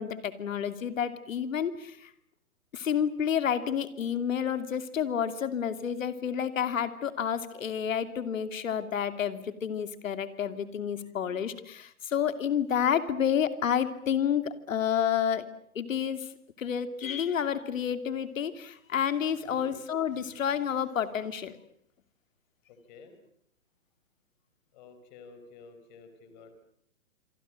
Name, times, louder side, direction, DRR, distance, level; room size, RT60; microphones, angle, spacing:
voice 1, 0.0-2.1 2.7-15.5 15.7-16.3 16.6-21.6, left 8 dB, 65° left, 10 dB, 2.8 m, -30 dB
voice 2, 22.7-23.1 24.7-26.5, left 5 dB, 30° left, 8 dB, 4.6 m, -51 dB
27.0 x 24.5 x 7.7 m, 0.68 s
hypercardioid pair, 165°, 43 cm